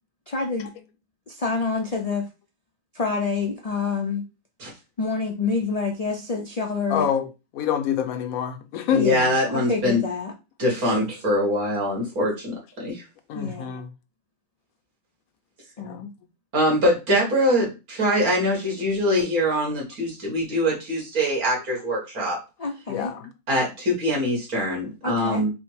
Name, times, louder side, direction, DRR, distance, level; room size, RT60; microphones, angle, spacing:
voice 1, 0.3-0.7 1.3-2.3 2.9-4.2 5.0-7.1 9.0-10.3 10.9-11.0 13.3-13.7 15.8-16.1 22.6-23.1 25.0-25.4, left 4 dB, 65° left, 0.3 m, -27 dB
voice 2, 6.9-7.3 7.5-9.1 10.8-11.0 13.3-13.9 15.8-16.1 22.9-23.3, left 9 dB, 80° left, 1.1 m, -26 dB
voice 3, 8.9-10.0 10.6-13.0 16.5-22.4 23.5-25.5, equal, 85° right, 2.2 m, -23 dB
4.3 x 2.1 x 4.5 m
omnidirectional pair, 1.5 m